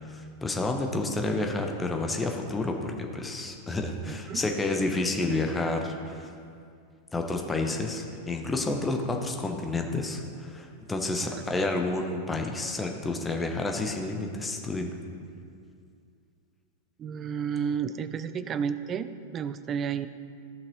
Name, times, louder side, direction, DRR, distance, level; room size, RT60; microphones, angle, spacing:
voice 1, 0.1-6.3 7.1-14.9, left 2 dB, 10° left, 3 dB, 0.9 m, -30 dB
voice 2, 4.0-4.4 11.2-11.4 17.0-20.1, right 7 dB, 30° right, 13 dB, 0.4 m, -32 dB
13.5 x 5.8 x 3.1 m, 2.3 s
figure-of-eight pair, 90°, 0 cm